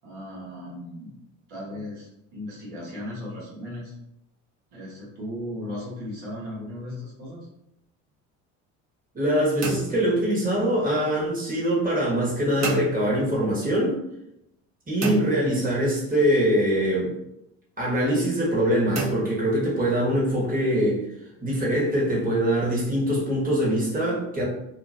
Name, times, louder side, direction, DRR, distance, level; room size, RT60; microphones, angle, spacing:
voice 1, 0.0-1.1 1.5-3.9 4.7-7.5, left 1 dB, 80° right, -5 dB, 1.4 m, -36 dB
voice 2, 9.1-14.0 14.9-17.1 17.8-21.0 21.4-24.4, equal, 20° right, -5 dB, 1.4 m, -23 dB
sound 1, 9.6-10.9 12.6-13.6 15.0-16.2 18.9-20.2, right 2 dB, 40° right, 1.0 m, -32 dB
2.9 x 2.4 x 2.6 m, 0.82 s
hypercardioid pair, 65°, 38 cm